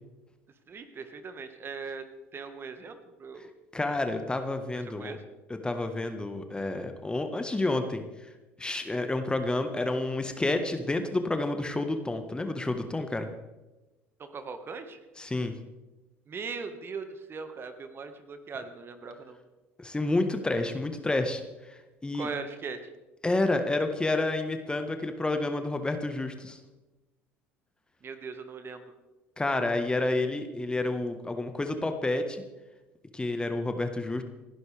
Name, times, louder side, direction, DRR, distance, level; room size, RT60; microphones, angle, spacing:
voice 1, 0.7-2.0 2.3-3.5 5.0-5.2 14.2-15.0 16.3-19.4 22.1-22.8 28.0-28.9, right 5 dB, 35° right, 8 dB, 1.6 m, -39 dB
voice 2, 3.7-5.2 5.5-8.0 8.6-13.3 15.2-15.5 19.8-22.3 23.2-26.6 29.4-32.4 33.1-34.2, left 2 dB, 15° left, 7 dB, 1.5 m, -29 dB
29.0 x 11.5 x 3.5 m, 1.1 s
figure-of-eight pair, 65°, 7 cm